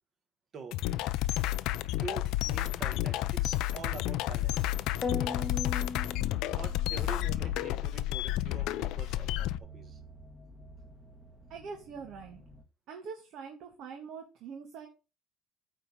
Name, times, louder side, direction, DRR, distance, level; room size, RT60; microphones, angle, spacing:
sound 1, 0.7-9.6, left 15 dB, 70° left, 0.5 m, -31 dB
voice 1, 1.9-4.7 5.2-5.6 6.5-10.0, right 4 dB, 35° right, 1.6 m, -45 dB
sound 2, 4.5-12.6, right 2 dB, 15° right, 1.5 m, -50 dB
sound 3, 5.0-7.0, left 4 dB, 15° left, 1.1 m, -37 dB
voice 2, 11.5-12.4 12.9-14.9, right 5 dB, 60° right, 1.6 m, -44 dB
9.1 x 3.6 x 6.1 m
cardioid pair, 130°, 0 cm